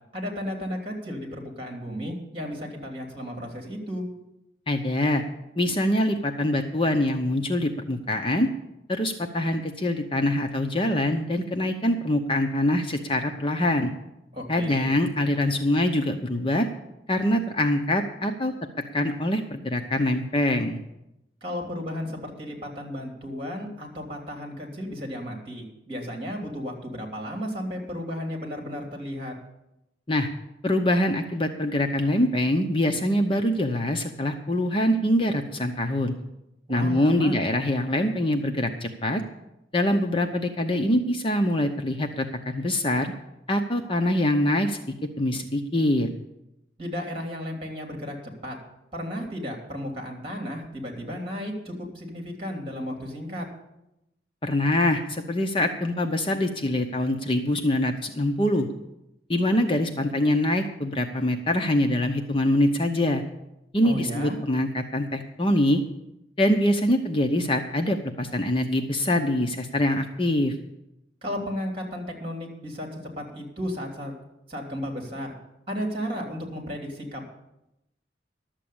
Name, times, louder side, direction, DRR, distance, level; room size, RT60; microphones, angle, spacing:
voice 1, 0.1-4.1 14.3-14.9 21.4-29.3 36.7-37.4 46.8-48.2 48.4-48.6 48.9-53.4 63.8-64.4 71.2-74.1 74.5-75.3 75.7-77.3, equal, 30° right, 1 dB, 3.2 m, -34 dB
voice 2, 4.7-5.2 5.6-8.5 8.9-13.9 14.5-16.7 17.1-18.5 18.9-20.8 30.1-30.3 30.6-36.1 36.7-39.2 39.7-43.1 43.5-44.8 45.2-46.1 54.4-58.7 59.3-63.2 63.7-65.8 66.4-70.5, left 1 dB, 30° left, 5 dB, 0.7 m, -24 dB
12.0 x 7.6 x 8.6 m, 0.89 s
head